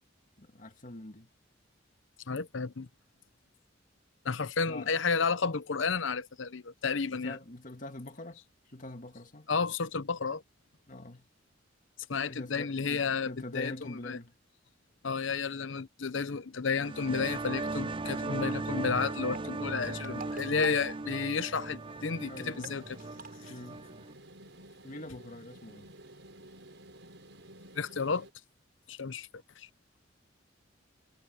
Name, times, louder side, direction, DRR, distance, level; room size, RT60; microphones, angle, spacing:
voice 1, 0.4-1.3 4.7-4.9 7.1-9.5 10.9-11.3 12.1-14.4 20.0-20.2 22.3-22.8 23.5-23.8 24.8-25.9, left 1 dB, 40° left, 2.2 m, -45 dB
voice 2, 2.3-2.9 4.2-7.4 9.5-10.4 12.1-14.2 15.0-23.0 23.4-23.5 27.8-28.3 28.9-29.3 29.6-29.7, left 5 dB, 75° left, 0.9 m, -32 dB
sound 1, 16.7-24.1, right 2 dB, 25° right, 0.5 m, -37 dB
sound 2, 17.0-17.3 19.1-21.6 21.9-22.0 22.2-22.3 22.5-23.5, right 4 dB, 50° right, 7.8 m, -47 dB
sound 3, 20.4-28.3, right 1 dB, 65° right, 7.1 m, -53 dB
head